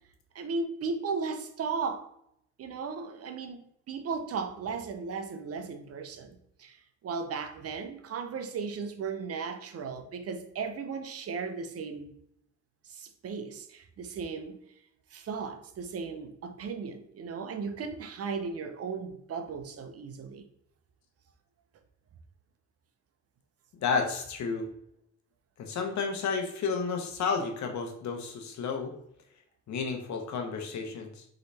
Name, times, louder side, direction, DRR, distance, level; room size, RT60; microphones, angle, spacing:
voice 1, 0.3-2.1 2.6-6.8 7.0-12.1 12.8-14.6 15.1-20.4, right 5 dB, 55° right, 0.7 m, -36 dB
voice 2, 23.8-24.7 25.6-28.9 29.7-31.3, left 5 dB, 70° left, 1.1 m, -31 dB
4.0 x 3.9 x 3.3 m
cardioid pair, 90°, 30 cm